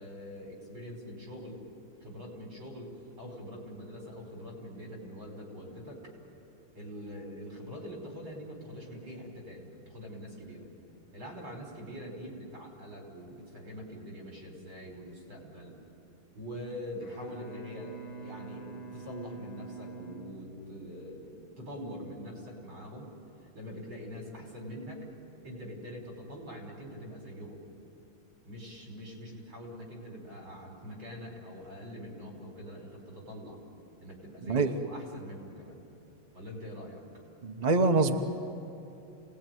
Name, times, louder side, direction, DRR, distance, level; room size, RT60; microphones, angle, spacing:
voice 1, 0.0-1.6 2.0-6.1 6.7-10.7 11.1-15.8 16.4-23.1 23.5-25.0 25.4-27.6 28.4-33.6 34.0-35.8 36.3-37.0, equal, 65° right, 0 dB, 6.0 m, -44 dB
Bowed string instrument, 17.0-21.3, right 3 dB, 65° left, 2.9 m, -46 dB
voice 2, 37.4-38.1, right 3 dB, 35° right, 5 dB, 0.7 m, -24 dB
28.0 x 19.0 x 9.3 m, 2.9 s
omnidirectional pair, 2.4 m